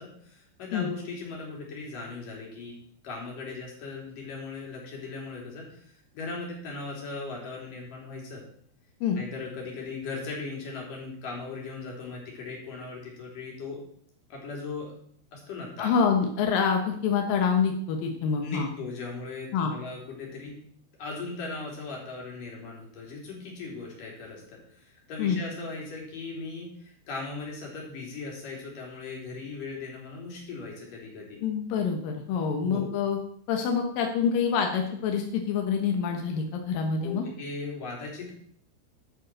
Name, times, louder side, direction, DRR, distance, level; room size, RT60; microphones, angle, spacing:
voice 1, 0.0-2.7 3.0-8.4 9.2-13.8 14.3-14.9 15.3-15.9 18.4-20.6 21.0-31.4 32.6-32.9 37.0-38.3, left 3 dB, 45° left, -1 dB, 4.5 m, -38 dB
voice 2, 15.8-18.7 19.5-19.7 25.2-25.4 31.4-33.2 33.5-37.2, left 6 dB, 70° left, 3 dB, 2.2 m, -26 dB
11.5 x 7.8 x 6.2 m, 0.63 s
omnidirectional pair, 5.6 m